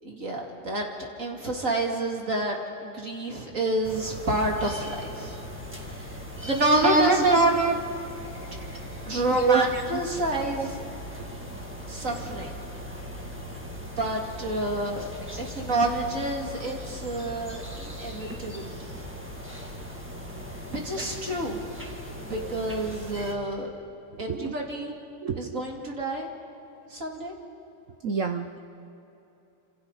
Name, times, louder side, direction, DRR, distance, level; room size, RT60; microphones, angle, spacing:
voice 1, 0.0-5.4 6.0-6.1 6.4-7.5 9.1-10.8 11.9-12.6 13.9-15.0 15.4-18.9 20.7-21.6 22.2-23.7 24.2-24.9 25.4-26.3 26.9-27.3, right 1 dB, 35° right, 0 dB, 2.8 m, -28 dB
sound 1, 3.8-23.3, equal, 5° right, 1.9 m, -39 dB
voice 2, 6.8-7.8 8.2-9.1 9.3-9.8 10.6-10.7 11.2-11.3 11.6-12.0 24.3-24.5 25.2-25.6 28.0-28.6, right 4 dB, 70° right, 6 dB, 0.7 m, -26 dB
29.5 x 26.5 x 4.1 m, 2.9 s
omnidirectional pair, 2.4 m